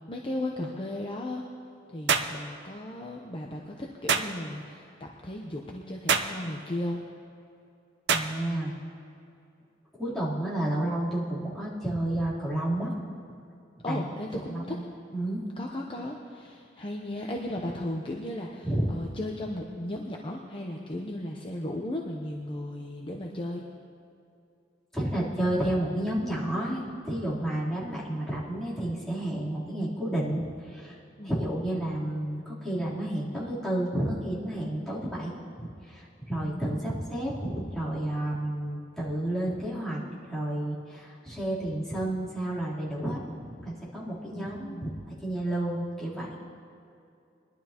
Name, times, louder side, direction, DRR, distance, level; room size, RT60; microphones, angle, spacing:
voice 1, 0.1-1.4 1.9-7.0 13.8-14.7 15.6-23.6 31.2-31.4 36.3-37.2 44.3-45.0, left 1 dB, 30° left, 0 dB, 0.8 m, -36 dB
sound 1, 2.1-2.4 4.1-4.3 6.1-6.4 8.1-8.3, right 6 dB, 70° right, 0.7 m, -25 dB
voice 2, 8.1-8.7 9.9-12.9 13.9-14.0 14.5-14.8 15.1-15.4 18.6-18.8 24.9-31.0 31.2-46.3, right 1 dB, 5° left, -9 dB, 3.5 m, -31 dB
22.0 x 12.0 x 3.0 m, 2.5 s
head